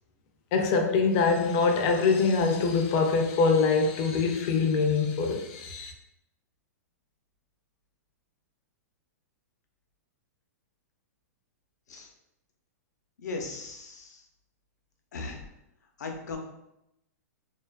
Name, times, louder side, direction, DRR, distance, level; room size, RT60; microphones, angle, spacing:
voice 1, 0.5-5.9, left 4 dB, 35° left, 4 dB, 0.3 m, -24 dB
voice 2, 13.2-14.2 15.1-15.4 16.0-16.4, left 3 dB, 85° left, 2 dB, 0.5 m, -37 dB
2.5 x 2.3 x 2.2 m, 0.85 s
hypercardioid pair, 150°, 9 cm